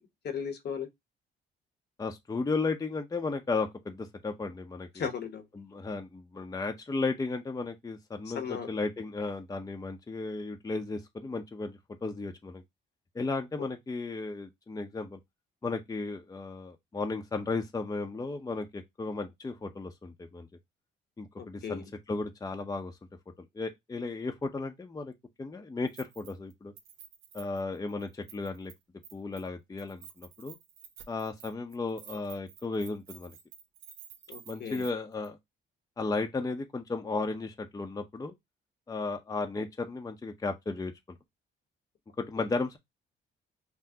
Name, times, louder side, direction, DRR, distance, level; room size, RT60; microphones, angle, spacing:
voice 1, 0.2-0.9 4.9-5.5 8.3-8.7 21.4-21.9 34.3-34.9 42.4-42.5, left 7 dB, 55° left, 0.9 m, -36 dB
voice 2, 2.0-5.0 5.6-12.6 13.1-15.2 15.6-20.5 21.2-21.8 22.1-22.9 23.4-25.1 25.4-26.7 27.3-28.7 29.1-30.6 31.1-33.4 34.5-35.4 36.0-38.3 38.9-40.9 42.2-42.8, left 3 dB, 20° left, 0.6 m, -34 dB
Keys jangling, 25.9-26.5 26.8-28.7 29.0-29.5 29.8-34.9 35.2-35.3, right 8 dB, 85° right, 0.8 m, -51 dB
5.7 x 2.0 x 2.6 m
cardioid pair, 90°, 20 cm